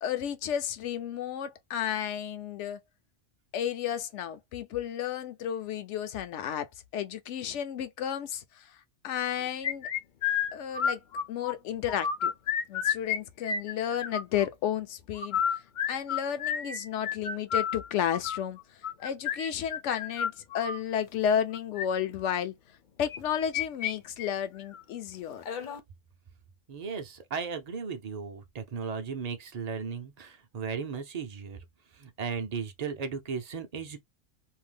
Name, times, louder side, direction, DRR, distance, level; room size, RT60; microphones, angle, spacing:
voice 1, 0.0-2.8 3.5-9.9 10.5-11.0 11.3-12.3 12.7-15.6 15.9-22.5 23.0-25.4, left 9 dB, 75° left, 0.9 m, -32 dB
sound 1, 9.6-11.5 11.9-13.2 13.4-14.5 15.2-20.8 21.5-21.9 23.1-23.9 24.2-24.3 24.7-24.8 25.4-25.8, left 7 dB, 55° left, 0.5 m, -31 dB
voice 2, 26.7-31.6 31.9-34.0, right 6 dB, 45° right, 0.5 m, -36 dB
2.6 x 2.1 x 3.3 m
omnidirectional pair, 1.2 m